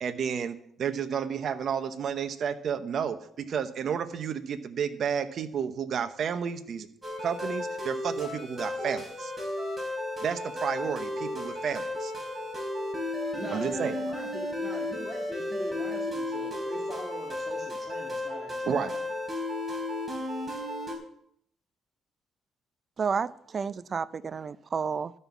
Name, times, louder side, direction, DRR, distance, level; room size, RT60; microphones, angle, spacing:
voice 1, 0.0-6.9 7.2-9.3 10.2-12.1 13.5-13.9 18.7-18.9, right 7 dB, 55° right, 0.9 m, -31 dB
sound 1, 7.0-20.9, left 1 dB, 15° right, 3.3 m, -34 dB
voice 2, 13.2-19.0, left 1 dB, 10° left, 1.8 m, -42 dB
voice 3, 23.0-25.1, right 6 dB, 40° right, 0.4 m, -31 dB
12.5 x 5.5 x 7.1 m
cardioid pair, 110°, 0 cm